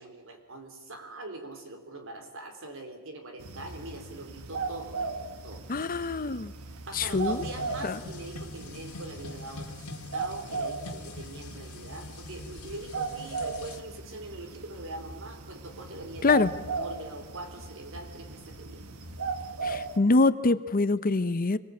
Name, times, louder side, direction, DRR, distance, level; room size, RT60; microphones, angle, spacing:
voice 1, 0.0-5.1 5.4-5.6 6.9-16.4 16.8-18.8, right 2 dB, 65° right, 6 dB, 3.9 m, -43 dB
sound 1, 3.4-20.0, right 4 dB, 80° right, 1.6 m, -38 dB
voice 2, 5.7-6.5 6.9-7.4 7.8-8.0 16.2-16.5 19.6-21.6, left 3 dB, 40° left, 14 dB, 0.8 m, -24 dB
sound 2, 6.9-13.8, left 3 dB, 90° left, 2.0 m, -44 dB
25.5 x 20.0 x 8.5 m, 1.3 s
head